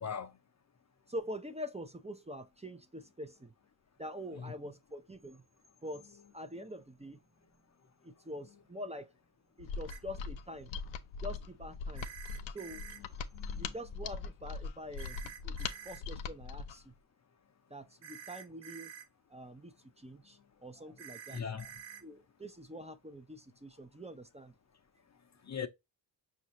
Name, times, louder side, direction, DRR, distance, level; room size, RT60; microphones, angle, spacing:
voice 1, 0.0-0.3 4.4-4.5 13.3-13.7 21.3-21.7 25.4-25.7, left 7 dB, 35° left, 0.6 m, -39 dB
voice 2, 1.1-3.5 4.0-5.4 5.8-7.2 8.0-9.1 9.6-10.7 11.2-12.1 12.5-12.8 13.5-15.2 15.4-16.9 17.7-18.9 19.3-21.4 22.0-24.5, equal, 15° right, 0.6 m, -45 dB
Mechanisms, 9.6-16.8, left 5 dB, 75° left, 0.7 m, -41 dB
sound 1, 9.9-10.0 12.0-13.0 15.0-16.0 18.0-19.1 21.0-22.0, right 9 dB, 65° right, 0.8 m, -49 dB
5.4 x 2.6 x 2.9 m
supercardioid pair, 45°, 47 cm